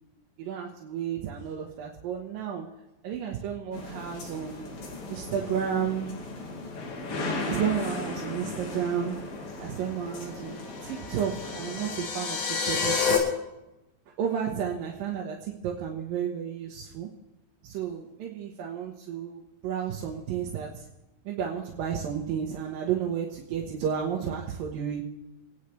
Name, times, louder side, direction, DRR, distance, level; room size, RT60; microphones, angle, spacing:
voice 1, 0.4-2.7 3.0-4.7 5.1-6.2 7.4-9.3 9.6-13.2 14.2-17.1 17.6-20.8 21.2-25.0, right 8 dB, 65° right, -2 dB, 2.8 m, -32 dB
sound 1, 3.7-12.0, left 2 dB, 65° left, 4.3 m, -37 dB
sound 2, 10.6-13.2, left 6 dB, 85° left, 5.1 m, -29 dB
27.5 x 10.0 x 3.4 m, 0.95 s
omnidirectional pair, 4.7 m